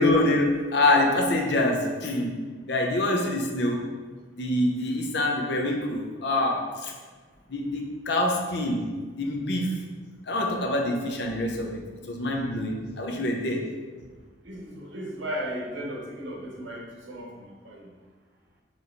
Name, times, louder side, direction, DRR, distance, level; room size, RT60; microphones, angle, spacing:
voice 1, 0.0-3.9 4.3-6.9 7.5-9.8 10.3-13.7, left 1 dB, 60° left, 1 dB, 0.6 m, -26 dB
voice 2, 14.4-17.9, equal, 70° right, -2 dB, 1.0 m, -36 dB
4.2 x 3.1 x 3.9 m, 1.4 s
head